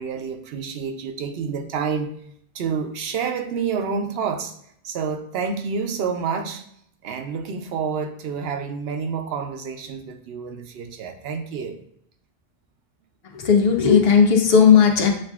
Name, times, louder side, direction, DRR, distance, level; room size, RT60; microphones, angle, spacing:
voice 1, 0.0-2.1 2.5-4.5 4.8-6.6 7.0-11.8, right 6 dB, 75° right, 6 dB, 0.8 m, -28 dB
voice 2, 13.3-15.1, left 6 dB, 75° left, 2 dB, 0.9 m, -15 dB
7.4 x 2.5 x 2.3 m, 0.68 s
omnidirectional pair, 1.0 m